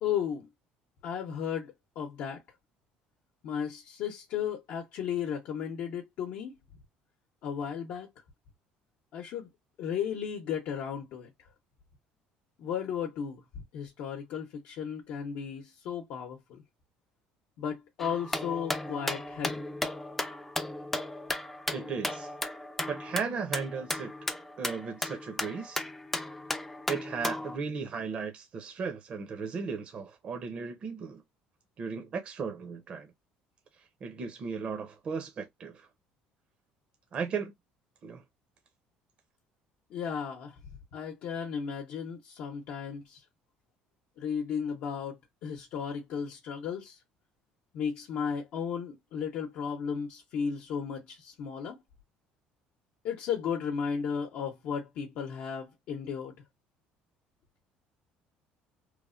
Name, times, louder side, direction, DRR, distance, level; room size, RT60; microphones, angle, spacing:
voice 1, 0.0-0.5 1.0-2.4 3.4-6.6 7.4-8.1 9.1-9.5 9.8-11.3 12.6-16.6 17.6-19.6 39.9-40.6 40.9-43.2 44.2-47.0 47.7-51.8 53.0-56.3, left 7 dB, 65° left, 0.7 m, -35 dB
sound 1, 18.0-27.6, left 1 dB, 5° left, 0.4 m, -35 dB
voice 2, 21.7-22.3 22.9-24.1 24.6-25.8 26.9-31.2 31.8-33.1 34.0-35.9 37.1-37.5 38.0-38.2, right 5 dB, 35° right, 0.6 m, -36 dB
3.1 x 2.1 x 2.4 m
cardioid pair, 150°, 3 cm